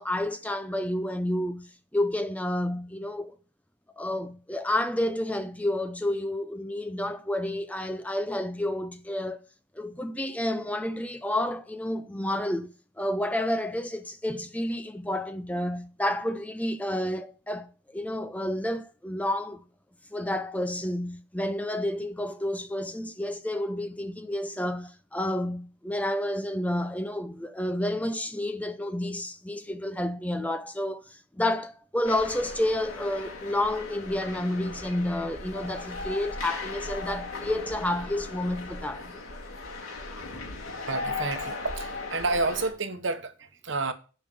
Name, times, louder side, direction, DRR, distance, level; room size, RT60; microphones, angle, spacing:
voice 1, 0.0-3.4 4.0-9.4 9.8-12.7 13.0-19.6 20.1-39.1, left 1 dB, 5° left, 0.4 m, -30 dB
sound 1, 32.0-42.7, left 3 dB, 85° left, 3.7 m, -37 dB
voice 2, 40.9-43.9, right 3 dB, 60° right, 1.0 m, -30 dB
8.8 x 5.4 x 7.5 m
head